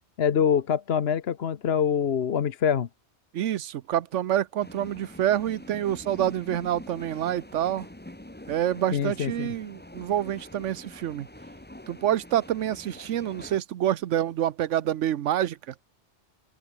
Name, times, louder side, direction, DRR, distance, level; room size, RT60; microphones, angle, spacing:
voice 1, 0.2-2.9 8.9-9.5, left 8 dB, 60° left, 1.1 m, -25 dB
voice 2, 3.3-7.9 8.5-11.3 11.9-15.7, right 11 dB, 85° right, 1.1 m, -27 dB
sound 1, 4.6-13.6, left 1 dB, 10° left, 1.5 m, -45 dB
open air
omnidirectional pair, 1.2 m